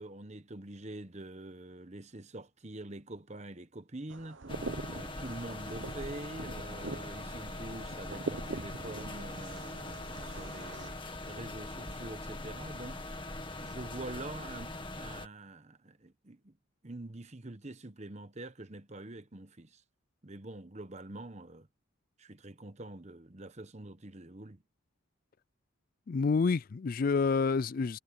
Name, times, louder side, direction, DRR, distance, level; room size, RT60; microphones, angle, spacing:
voice 1, 0.0-4.4 4.9-11.0 11.3-13.0 13.6-16.5 16.8-19.8 20.2-21.7 22.2-24.6, right 2 dB, 35° right, 1.0 m, -45 dB
sound 1, 4.1-10.9, right 3 dB, 60° right, 0.9 m, -43 dB
sound 2, 4.5-15.3, left 2 dB, 25° left, 1.8 m, -42 dB
voice 2, 26.1-28.0, left 4 dB, 40° left, 0.3 m, -28 dB
head